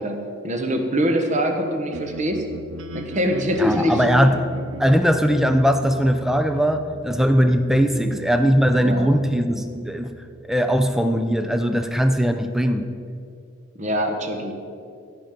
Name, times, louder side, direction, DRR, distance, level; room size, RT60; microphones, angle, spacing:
voice 1, 0.0-2.5 2.9-4.0 4.6-4.7 7.9-8.2 8.8-9.1 13.7-14.5, equal, 35° right, 4 dB, 1.1 m, -24 dB
sound 1, 1.9-12.0, right 1 dB, 65° right, 0.7 m, -38 dB
voice 2, 3.6-4.3 4.8-10.1 10.5-12.8, equal, ahead, 8 dB, 0.5 m, -19 dB
15.5 x 5.3 x 5.8 m, 2.4 s
head